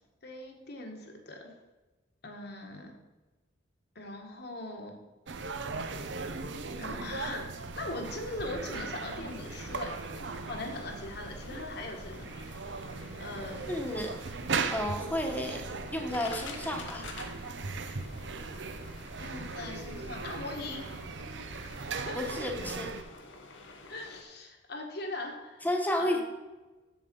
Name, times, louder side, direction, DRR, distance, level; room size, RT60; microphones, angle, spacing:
voice 1, 0.2-1.5 2.2-2.9 3.9-5.0 6.8-7.5 7.8-10.1 10.4-12.5 13.2-13.7 19.2-21.0 21.6-22.2 23.9-25.7 26.0-26.2, left 2 dB, 60° left, 2 dB, 1.7 m, -40 dB
sound 1, 5.3-23.0, right 4 dB, 70° right, 0.7 m, -38 dB
sound 2, 9.0-24.2, left 3 dB, 85° left, 1.3 m, -49 dB
voice 2, 13.7-14.2 14.7-15.6 15.9-17.1 22.1-22.9 25.6-26.2, left 1 dB, 10° left, 2 dB, 1.2 m, -32 dB
7.4 x 7.1 x 5.3 m, 1.1 s
head